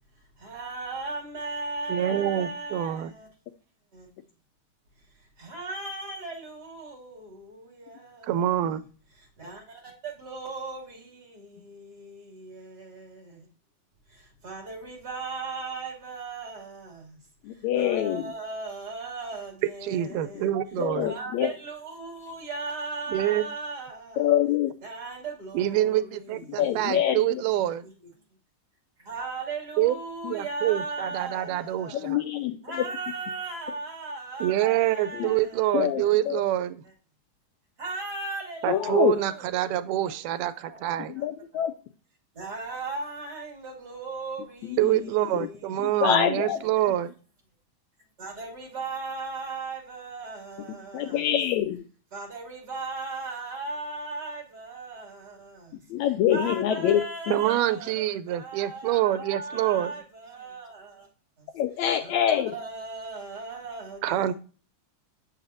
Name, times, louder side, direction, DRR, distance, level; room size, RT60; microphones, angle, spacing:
voice 1, 0.4-3.3 3.9-4.1 5.2-8.8 9.2-13.5 14.1-17.2 17.5-20.5 21.0-24.3 24.8-26.9 27.8-27.9 29.0-32.1 32.6-36.1 37.8-40.8 41.2-41.3 42.3-46.1 46.5-47.0 48.2-51.2 52.1-55.8 56.3-61.1 61.4-61.5 62.0-64.3, right 3 dB, 35° right, 2.9 m, -38 dB
voice 2, 1.9-3.1 8.3-8.8 19.8-21.1 23.1-23.4 25.5-27.8 29.8-30.0 30.3-32.2 34.4-36.8 38.6-41.2 44.8-47.1 57.3-59.9 64.0-64.3, right 13 dB, 85° right, 2.1 m, -26 dB
voice 3, 17.4-18.3 20.8-21.5 24.2-24.7 26.6-27.4 30.2-30.3 31.9-32.8 35.1-35.3 35.7-36.4 38.7-39.1 41.1-41.7 44.7-45.0 46.0-46.6 50.9-51.8 55.9-57.0 61.5-62.5, left 10 dB, 80° left, 1.7 m, -25 dB
7.3 x 5.4 x 2.6 m
omnidirectional pair, 3.6 m